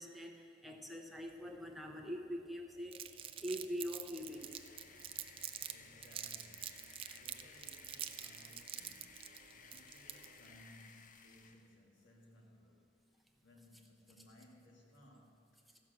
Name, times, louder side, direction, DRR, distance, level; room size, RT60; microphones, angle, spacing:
voice 1, 0.0-4.6, equal, ahead, 1 dB, 0.7 m, -44 dB
sound 1, 1.1-10.7, right 3 dB, 60° right, 1.0 m, -66 dB
Crumpling crinkling, 2.9-5.7 6.0-10.5, right 10 dB, 30° right, 0.4 m, -46 dB
sound 2, 4.0-11.7, left 5 dB, 45° left, 0.5 m, -59 dB
voice 2, 5.4-12.9 13.4-15.8, equal, 75° left, 0 dB, 1.8 m, -63 dB
15.0 x 5.9 x 6.2 m, 2.5 s
head